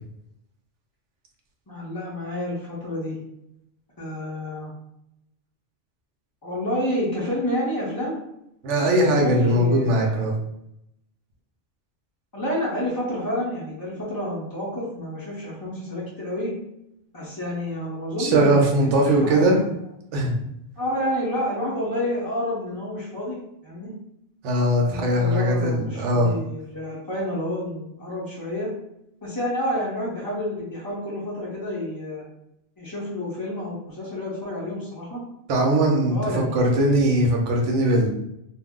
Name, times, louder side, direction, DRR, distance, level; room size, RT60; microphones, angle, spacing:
voice 1, 1.7-3.2 4.0-4.7 6.4-8.2 8.8-10.3 12.3-16.5 17.1-19.7 20.8-23.4 23.6-23.9 24.8-28.7 29.2-32.2 32.8-35.2 36.1-36.9, left 1 dB, 30° left, -7 dB, 0.4 m, -29 dB
voice 2, 8.6-10.3 18.2-19.6 20.1-20.4 24.4-26.3 35.5-38.1, right 1 dB, 85° right, 0 dB, 1.0 m, -20 dB
2.5 x 2.0 x 3.5 m, 0.80 s
omnidirectional pair, 1.2 m